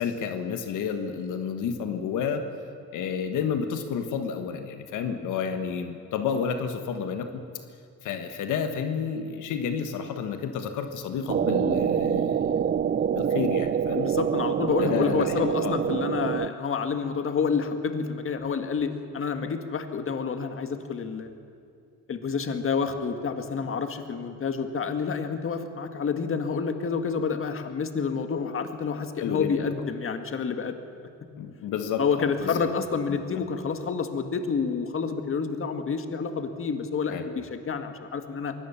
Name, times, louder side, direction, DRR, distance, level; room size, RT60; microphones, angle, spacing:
voice 1, 0.0-2.4 2.9-7.6 8.0-12.6 12.9-14.1 14.8-15.8 29.2-29.7 31.4-32.7 33.1-33.4 37.1-37.2, left 6 dB, 85° left, 7 dB, 1.5 m, -31 dB
sound 1, 11.3-16.5, right 8 dB, 35° right, 0.5 m, -26 dB
voice 2, 13.9-21.3 22.1-30.8 32.0-38.5, left 5 dB, 45° left, 7 dB, 1.8 m, -29 dB
23.0 x 17.5 x 7.2 m, 2.4 s
cardioid pair, 90°, 30 cm